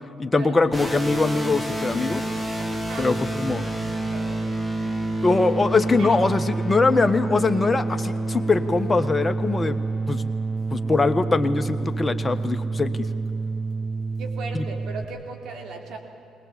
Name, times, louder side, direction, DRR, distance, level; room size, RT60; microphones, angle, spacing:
voice 1, 0.2-2.2 3.0-3.7 5.2-9.8 10.1-10.2 10.7-13.0 14.5-14.6, left 3 dB, 25° left, 9 dB, 1.3 m, -22 dB
sound 1, 0.7-15.0, right 2 dB, 15° right, 2.4 m, -28 dB
voice 2, 3.6-4.8 6.0-6.2 14.2-16.0, right 4 dB, 65° right, 2 dB, 3.2 m, -38 dB
20.5 x 19.5 x 8.3 m, 3.0 s
hypercardioid pair, 60°, 0 cm